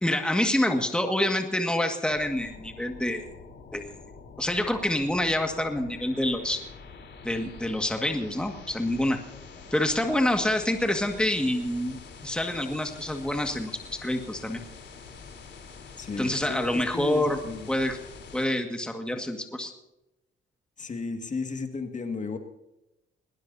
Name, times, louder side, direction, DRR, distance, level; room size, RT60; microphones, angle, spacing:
voice 1, 0.0-3.3 3.7-4.0 4.4-6.6 7.2-9.2 9.7-13.7 14.0-14.6 16.2-17.4 17.7-18.0 18.3-19.7, left 1 dB, 5° left, 4 dB, 1.9 m, -27 dB
sound 1, 2.1-18.5, left 5 dB, 60° left, 3.8 m, -46 dB
voice 2, 16.0-17.7 20.8-22.4, left 4 dB, 40° left, 5 dB, 2.1 m, -34 dB
20.5 x 19.5 x 2.8 m, 0.93 s
cardioid pair, 90°, 20 cm